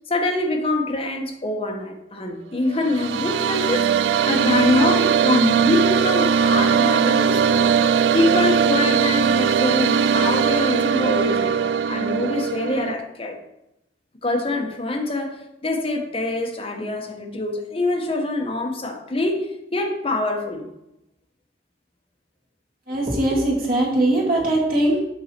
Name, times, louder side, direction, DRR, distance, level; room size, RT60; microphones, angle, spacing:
voice 1, 0.1-7.7 8.1-11.5 11.9-13.4 14.2-15.4 15.6-20.7, left 2 dB, 35° left, 2 dB, 1.1 m, -24 dB
sound 1, 2.7-12.9, right 7 dB, 70° right, 0.3 m, -20 dB
voice 2, 22.9-25.0, right 1 dB, 55° right, -3 dB, 2.2 m, -20 dB
8.1 x 5.4 x 4.4 m, 0.87 s
head